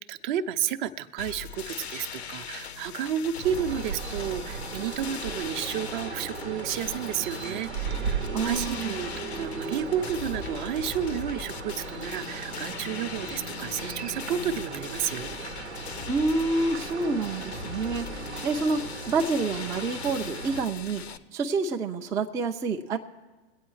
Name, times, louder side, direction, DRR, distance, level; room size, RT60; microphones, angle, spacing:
voice 1, 0.1-15.4, right 9 dB, 50° right, 11 dB, 0.6 m, -31 dB
sound 1, 1.2-21.2, left 8 dB, 75° left, 0.7 m, -40 dB
sound 2, 3.4-20.6, right 4 dB, 90° right, 0.8 m, -37 dB
voice 2, 8.3-8.9 16.1-21.0 21.3-23.0, right 3 dB, 10° right, 2 dB, 0.3 m, -28 dB
22.5 x 8.8 x 3.1 m, 1.2 s
hypercardioid pair, 100°, 32 cm